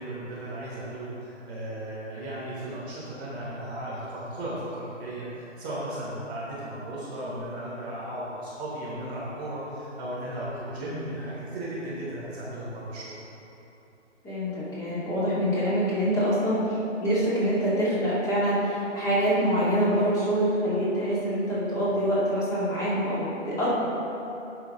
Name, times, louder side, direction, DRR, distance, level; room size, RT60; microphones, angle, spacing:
voice 1, 0.0-13.1, right 1 dB, 5° right, -11 dB, 0.6 m, -35 dB
voice 2, 14.2-23.7, equal, 10° left, -9 dB, 2.1 m, -25 dB
17.0 x 6.0 x 3.6 m, 3.0 s
figure-of-eight pair, 145°, 37 cm